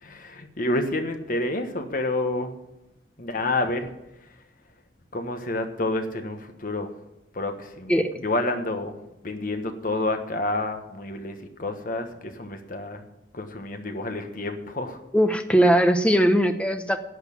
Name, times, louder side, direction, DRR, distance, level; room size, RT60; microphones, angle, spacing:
voice 1, 0.0-2.5 3.2-3.9 5.1-6.9 7.3-8.9 9.2-13.0 13.3-15.0, left 2 dB, 50° left, 6 dB, 1.4 m, -29 dB
voice 2, 15.1-17.0, equal, 5° left, 7 dB, 0.9 m, -20 dB
11.5 x 6.6 x 8.5 m, 0.87 s
head